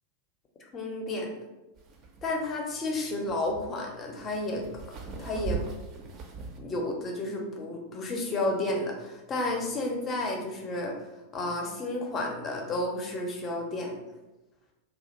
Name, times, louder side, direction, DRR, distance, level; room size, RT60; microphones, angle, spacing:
voice 1, 0.7-1.3 2.2-4.6 5.2-5.6 6.6-10.9 11.3-13.9, left 2 dB, 25° left, 1 dB, 0.5 m, -31 dB
sound 1, 1.8-6.6, right 4 dB, 35° right, 0.4 m, -39 dB
2.4 x 2.0 x 2.8 m, 1.0 s
figure-of-eight pair, 90°, 0 cm